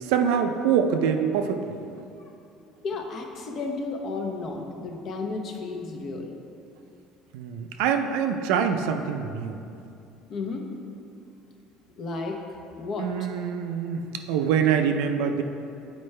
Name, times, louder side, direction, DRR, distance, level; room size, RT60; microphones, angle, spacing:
voice 1, 0.0-1.8 7.3-9.6 13.0-14.0 14.3-15.4, right 7 dB, 85° right, 6 dB, 0.5 m, -24 dB
voice 2, 2.8-6.4 10.3-10.6 12.0-13.3, left 3 dB, 40° left, 2 dB, 0.7 m, -33 dB
9.2 x 4.6 x 3.2 m, 2.6 s
cardioid pair, 155°, 0 cm